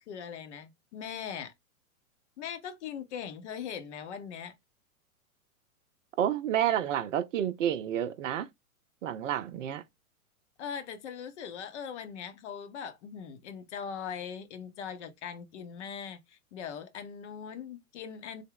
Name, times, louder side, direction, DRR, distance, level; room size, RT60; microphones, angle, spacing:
voice 1, 0.1-1.5 2.4-4.5 10.6-18.4, left 7 dB, 50° left, 0.8 m, -40 dB
voice 2, 6.2-8.5 9.0-9.8, right 10 dB, 55° right, 0.6 m, -29 dB
3.5 x 2.1 x 3.7 m
figure-of-eight pair, 110°, 44 cm